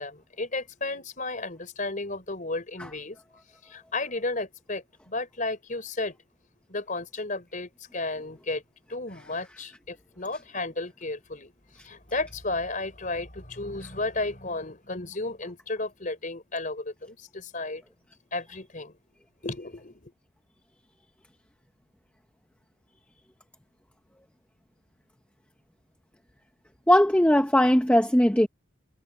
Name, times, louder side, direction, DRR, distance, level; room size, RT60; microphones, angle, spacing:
voice 1, 0.0-3.2 3.6-6.2 6.7-8.6 8.9-11.5 11.8-17.8 18.3-18.9 19.4-20.1, left 2 dB, 40° left, 4.3 m, -33 dB
voice 2, 26.9-28.5, equal, 5° left, 0.7 m, -19 dB
head